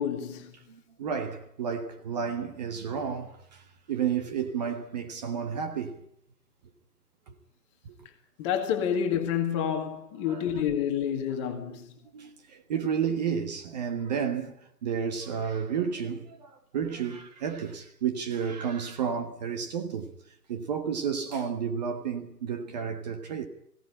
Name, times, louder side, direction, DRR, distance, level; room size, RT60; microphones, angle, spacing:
voice 1, 0.0-0.5 8.4-11.9, left 8 dB, 20° left, 2.0 m, -29 dB
voice 2, 0.7-6.0 7.3-7.4 7.8-7.9 10.2-10.6 11.3-11.4 11.7-11.8 12.1-20.1 20.5-23.5, right 7 dB, 25° right, 1.5 m, -32 dB
20.5 x 17.0 x 9.9 m
figure-of-eight pair, 145°, 48 cm